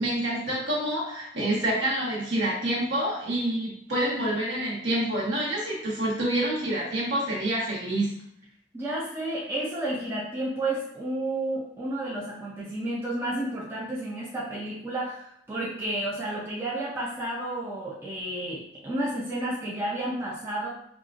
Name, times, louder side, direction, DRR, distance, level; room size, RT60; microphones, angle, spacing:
voice 1, 0.0-8.1, right 1 dB, 55° right, -5 dB, 1.4 m, -27 dB
voice 2, 8.7-20.7, right 1 dB, 10° right, -7 dB, 0.5 m, -31 dB
5.3 x 2.3 x 2.4 m, 0.72 s
head